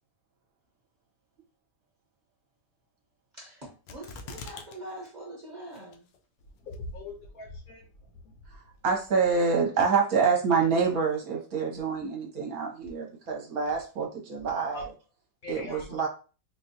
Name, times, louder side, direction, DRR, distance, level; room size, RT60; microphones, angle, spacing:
voice 1, 3.3-6.1, right 1 dB, 35° right, 0.8 m, -43 dB
sound 1, 3.9-4.8 5.1-5.2 5.7-6.2 6.7-6.8, left 4 dB, 90° left, 1.3 m, -42 dB
voice 2, 6.5-8.3 14.7-14.8 15.4-16.0, left 3 dB, 65° left, 0.9 m, -41 dB
voice 3, 8.8-14.9 15.5-16.1, right 5 dB, 60° right, 1.2 m, -26 dB
4.0 x 2.3 x 2.6 m
omnidirectional pair, 1.9 m